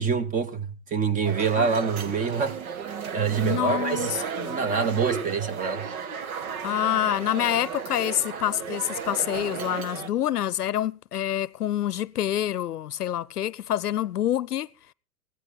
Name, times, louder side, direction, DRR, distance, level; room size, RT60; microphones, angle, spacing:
voice 1, 0.0-2.6 3.0-4.1 4.4-5.9, right 5 dB, 15° right, 1.0 m, -26 dB
sound 1, 1.2-10.1, right 7 dB, 65° right, 1.7 m, -34 dB
voice 2, 3.4-4.6 6.6-14.7, left 11 dB, 85° left, 0.7 m, -27 dB
25.5 x 18.0 x 2.3 m
hypercardioid pair, 120°, 45 cm